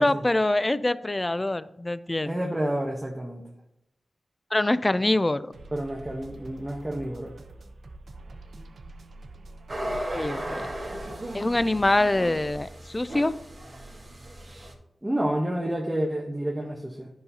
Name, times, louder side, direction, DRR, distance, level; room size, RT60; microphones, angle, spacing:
voice 1, 0.0-2.3 4.5-5.5 10.1-10.6 11.3-13.3, left 2 dB, 25° left, 15 dB, 0.4 m, -24 dB
voice 2, 2.2-3.4 5.7-7.3 15.0-17.1, right 1 dB, 15° right, 0 dB, 0.9 m, -29 dB
sound 1, 5.5-12.0, right 2 dB, 75° right, 0.6 m, -45 dB
sound 2, 9.7-14.7, right 1 dB, 40° right, 1.6 m, -36 dB
10.5 x 5.7 x 2.7 m, 0.84 s
cardioid pair, 55°, 0 cm